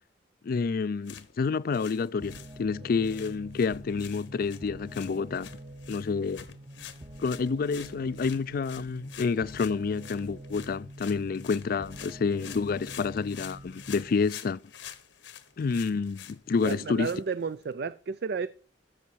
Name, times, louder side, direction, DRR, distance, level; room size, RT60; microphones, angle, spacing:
voice 1, 0.4-5.5 5.9-6.5 7.2-14.6 15.6-17.1, left 5 dB, 50° left, 0.4 m, -29 dB
sound 1, 0.9-17.7, left 9 dB, 80° left, 1.1 m, -48 dB
sound 2, 2.2-14.2, right 1 dB, 20° right, 0.7 m, -46 dB
voice 2, 16.6-18.5, right 5 dB, 60° right, 0.4 m, -32 dB
14.0 x 6.3 x 4.6 m
head